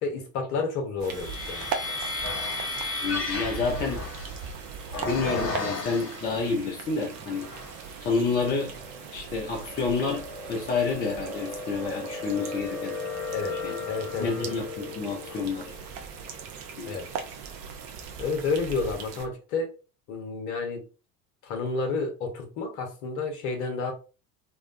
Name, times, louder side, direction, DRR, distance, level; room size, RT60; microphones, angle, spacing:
voice 1, 0.0-1.7 13.3-13.5 13.9-14.5 16.8-17.0 18.2-19.7 20.1-20.8 21.4-23.9, left 4 dB, 50° left, 3 dB, 1.0 m, -30 dB
sound 1, 1.0-6.5 7.1-7.9 8.4-17.6, left 3 dB, 85° left, 0.7 m, -36 dB
sound 2, 1.0-19.3, right 6 dB, 35° right, 0.5 m, -40 dB
voice 2, 3.0-4.0 5.0-7.5 8.0-8.7 9.1-12.9 13.5-13.8 14.2-15.7 16.8-17.0, left 4 dB, 20° left, 0 dB, 0.5 m, -29 dB
2.5 x 2.2 x 2.5 m, 0.33 s
figure-of-eight pair, 75°, 47 cm